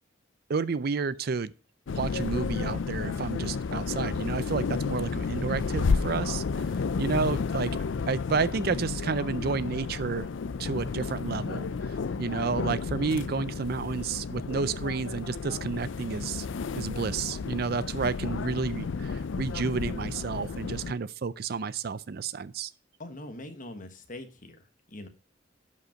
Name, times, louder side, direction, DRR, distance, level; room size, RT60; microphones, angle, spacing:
voice 1, 0.5-1.5 1.9-7.7 8.1-10.3 10.6-16.5 16.8-22.7, right 5 dB, 50° right, 0.4 m, -31 dB
sound 1, 1.9-20.9, left 5 dB, 70° left, 0.4 m, -32 dB
voice 2, 23.0-25.1, left 1 dB, 40° left, 1.3 m, -43 dB
11.5 x 5.4 x 5.0 m
head